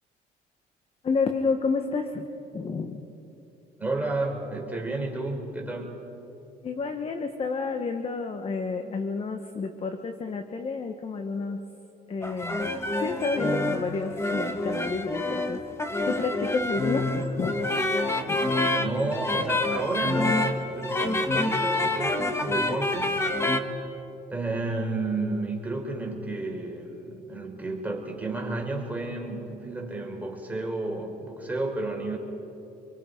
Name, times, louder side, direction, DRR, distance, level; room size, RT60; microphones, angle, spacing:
voice 1, 1.0-2.2 2.5-3.0 6.6-11.6 12.1-15.6 16.0-17.6 18.3-18.4, left 4 dB, 35° left, 6 dB, 1.4 m, -30 dB
voice 2, 3.8-6.0 18.4-23.3 24.3-32.2, right 2 dB, 10° right, 0 dB, 4.5 m, -32 dB
sound 1, 12.2-23.6, left 2 dB, 15° left, 1.6 m, -27 dB
28.0 x 23.0 x 5.4 m, 2.8 s
cardioid pair, 110°, 17 cm